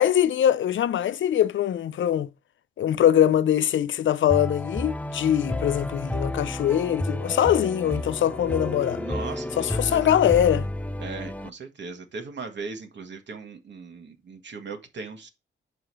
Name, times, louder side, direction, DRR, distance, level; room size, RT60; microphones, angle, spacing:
voice 1, 0.0-2.3 2.8-9.0 9.6-10.7, left 10 dB, 75° left, 0.5 m, -22 dB
sound 1, 4.3-11.5, left 1 dB, 5° left, 0.4 m, -31 dB
voice 2, 9.0-10.1 11.0-15.3, right 4 dB, 65° right, 1.5 m, -38 dB
5.0 x 4.7 x 6.1 m
cardioid pair, 80°, 20 cm